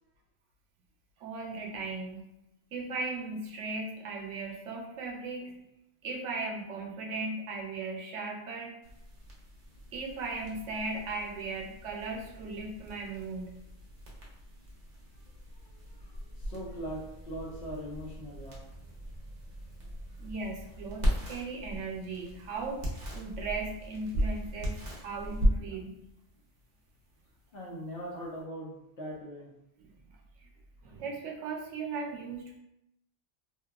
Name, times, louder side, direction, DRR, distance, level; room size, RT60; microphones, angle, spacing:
voice 1, 1.2-2.2 2.7-5.5 6.0-8.7 9.9-13.6 20.2-22.8 23.1-25.9 29.8-29.9 30.8-32.6, right 3 dB, 85° right, 0 dB, 0.9 m, -37 dB
sound 1, 8.8-28.4, equal, 45° right, 0.6 m, -37 dB
voice 2, 15.5-18.6 20.1-20.2 27.5-29.5, equal, 60° left, -3 dB, 0.7 m, -41 dB
2.8 x 2.2 x 2.3 m, 0.86 s
omnidirectional pair, 1.2 m